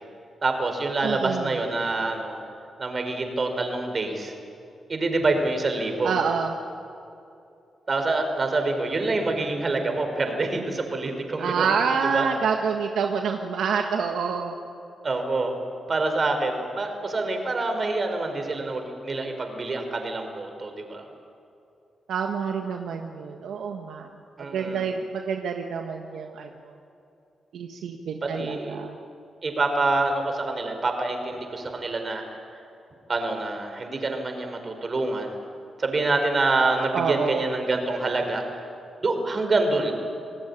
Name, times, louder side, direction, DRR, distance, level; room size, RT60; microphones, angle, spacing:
voice 1, 0.4-2.4 2.8-4.3 4.9-6.2 7.9-11.7 12.0-12.3 15.0-15.6 15.9-21.0 24.4-24.9 28.2-28.8 29.4-32.2 33.1-35.3 35.8-38.4 39.0-39.9, right 2 dB, 45° right, 5 dB, 5.2 m, -26 dB
voice 2, 1.0-1.5 6.0-6.5 11.4-14.5 22.1-24.1 24.5-26.5 27.5-29.0 36.9-37.4, right 6 dB, 85° right, 3 dB, 1.5 m, -27 dB
27.0 x 18.0 x 10.0 m, 2.6 s
cardioid pair, 60°, 0 cm